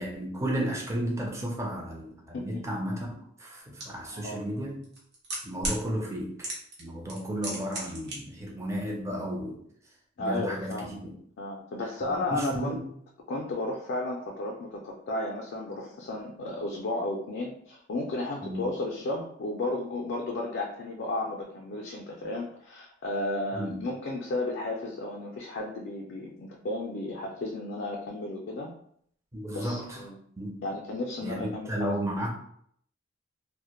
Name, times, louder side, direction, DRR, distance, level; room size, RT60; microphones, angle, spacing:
voice 1, 0.0-3.0 3.4-4.9 5.4-6.5 6.8-9.6 10.2-11.1 12.3-12.8 18.4-18.6 23.6-23.8 29.3-30.0 30.4-30.6 31.2-32.3, equal, 15° right, -1 dB, 0.5 m, -33 dB
sound 1, 3.8-3.9 4.8-5.8 6.4-6.8 7.1-8.1 8.4-8.5, right 1 dB, 60° right, 0.8 m, -33 dB
voice 2, 10.2-10.9 11.4-12.8 13.3-28.7 29.5-30.2 30.6-32.0, left 2 dB, 60° left, -1 dB, 0.4 m, -33 dB
2.1 x 2.0 x 2.9 m, 0.66 s
head